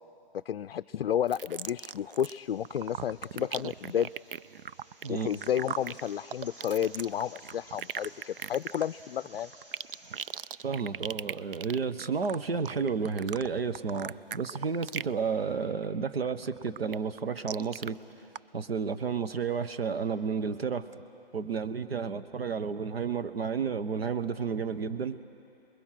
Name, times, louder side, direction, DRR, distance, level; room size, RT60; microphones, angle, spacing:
voice 1, 0.5-4.1 5.1-9.5, left 9 dB, 70° left, 11 dB, 0.4 m, -31 dB
sound 1, 1.3-2.4 2.6-15.2 15.5-15.8 16.2-17.9 18.3-18.4, right 8 dB, 65° right, 0.4 m, -39 dB
sound 2, 2.2-10.3, right 1 dB, 30° right, 2.2 m, -56 dB
voice 2, 10.6-18.0 18.5-20.9 21.3-25.2, right 5 dB, 80° right, 11 dB, 1.1 m, -31 dB
28.5 x 21.5 x 5.9 m, 2.8 s
hypercardioid pair, 165°, 30 cm